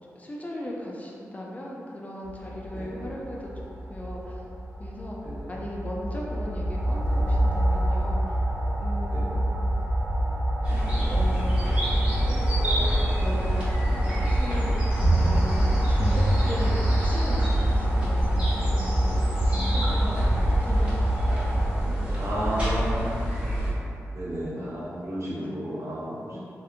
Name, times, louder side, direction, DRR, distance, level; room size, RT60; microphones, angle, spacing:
voice 1, 0.1-4.4 4.8-5.2 5.5-8.4 8.8-9.6 11.1-11.6 13.2-19.1 19.4-21.1 21.5-22.3 24.6-24.7 25.3-25.6 26.3-26.5, left 1 dB, 25° left, -3 dB, 0.4 m, -37 dB
sound 1, 2.2-21.7, right 1 dB, 75° right, 0.4 m, -25 dB
voice 2, 2.7-3.1 5.2-5.5 9.1-9.4 19.8-20.4 22.2-23.2 24.1-26.1, right 1 dB, 60° right, -8 dB, 0.8 m, -32 dB
sound 2, 10.6-23.7, right 1 dB, 20° right, 1.0 m, -28 dB
2.6 x 2.2 x 2.4 m, 2.6 s
cardioid pair, 50°, 6 cm